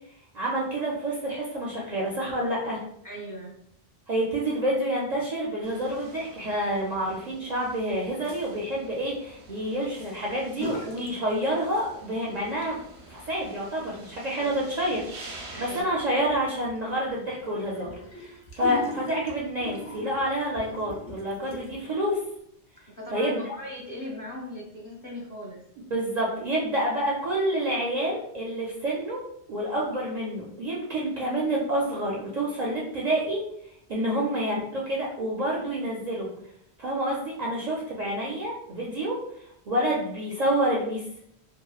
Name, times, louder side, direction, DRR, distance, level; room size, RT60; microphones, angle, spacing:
voice 1, 0.3-2.8 4.1-12.8 13.1-22.2 23.1-23.4 25.9-29.2 29.5-33.4 33.9-36.3 36.8-39.2 39.7-41.0, right 1 dB, 55° right, -4 dB, 0.5 m, -28 dB
voice 2, 3.0-3.5 14.3-14.7 15.5-15.9 22.9-25.6 34.0-34.2, left 1 dB, 25° left, -4 dB, 0.5 m, -39 dB
sound 1, 5.6-15.8, right 2 dB, 90° right, 1.0 m, -48 dB
sound 2, 10.5-11.1 11.4-12.1 12.4-21.9, left 1 dB, 60° left, 0.9 m, -40 dB
2.9 x 2.3 x 2.3 m, 0.73 s
omnidirectional pair, 1.1 m